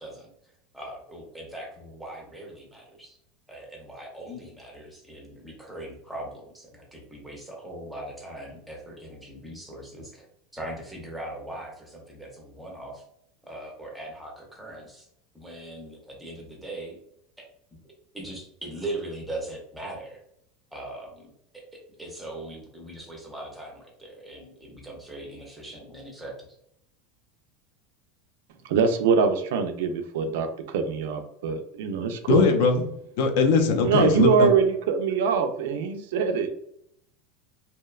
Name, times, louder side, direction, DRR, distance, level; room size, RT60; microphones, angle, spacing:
voice 1, 0.0-3.2 3.5-10.3 10.5-13.0 13.4-15.1 15.3-17.0 17.7-17.8 18.1-20.2 20.7-26.3, right 1 dB, ahead, -2 dB, 0.5 m, -40 dB
voice 2, 28.7-32.4 33.8-36.6, right 6 dB, 70° right, 7 dB, 0.3 m, -23 dB
voice 3, 32.3-32.9 33.2-34.5, left 5 dB, 60° left, 5 dB, 0.4 m, -21 dB
2.6 x 2.1 x 2.3 m, 0.71 s
supercardioid pair, 175°, 0 cm